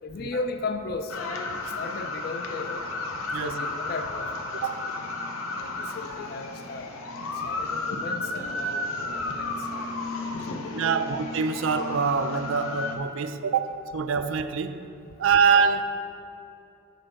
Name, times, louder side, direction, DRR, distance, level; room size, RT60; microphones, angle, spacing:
voice 1, 0.0-1.2 1.6-2.8 3.4-4.9 5.6-6.9 7.3-8.9 9.1-9.7 10.5-11.1, left 3 dB, 45° left, 8 dB, 0.4 m, -36 dB
sound 1, 1.1-13.0, left 2 dB, 85° left, 0.7 m, -33 dB
voice 2, 3.3-3.6 4.6-4.8 7.3-7.4 9.1-9.2 10.7-14.9 15.2-15.8, right 6 dB, 65° right, 10 dB, 0.4 m, -25 dB
6.5 x 3.8 x 6.3 m, 2.7 s
head